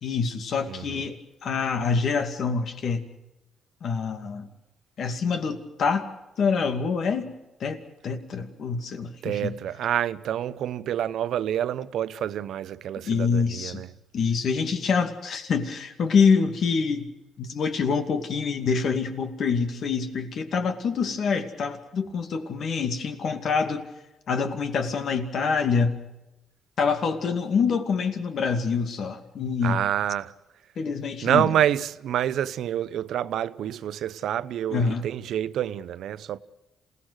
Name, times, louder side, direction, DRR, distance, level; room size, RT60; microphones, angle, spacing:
voice 1, 0.0-3.0 3.8-4.5 5.0-6.1 6.4-7.3 7.6-9.6 13.0-13.8 14.1-17.1 17.4-23.9 24.3-26.0 26.8-29.8 30.8-31.5 34.7-35.1, left 5 dB, 60° left, 2.4 m, -26 dB
voice 2, 0.7-1.0 9.2-13.9 29.6-30.3 31.2-36.4, right 10 dB, 75° right, 0.7 m, -27 dB
27.5 x 18.0 x 6.4 m
cardioid pair, 90°, 0 cm